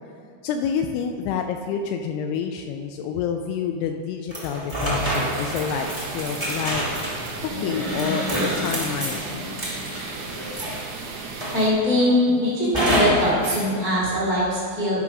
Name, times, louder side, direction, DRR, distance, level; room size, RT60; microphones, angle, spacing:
voice 1, 0.4-6.8 7.6-9.6, left 7 dB, 85° left, 5 dB, 2.3 m, -28 dB
sound 1, 4.3-11.0 11.4-12.0 12.7-13.7, equal, 35° right, 0.4 m, -28 dB
sound 2, 4.9-11.7, right 4 dB, 75° right, 1.8 m, -35 dB
sound 3, 7.5-10.3, left 2 dB, 65° left, 2.8 m, -33 dB
voice 2, 11.5-15.0, left 1 dB, 25° left, -8 dB, 0.9 m, -21 dB
11.0 x 4.7 x 6.1 m, 2.4 s
omnidirectional pair, 5.0 m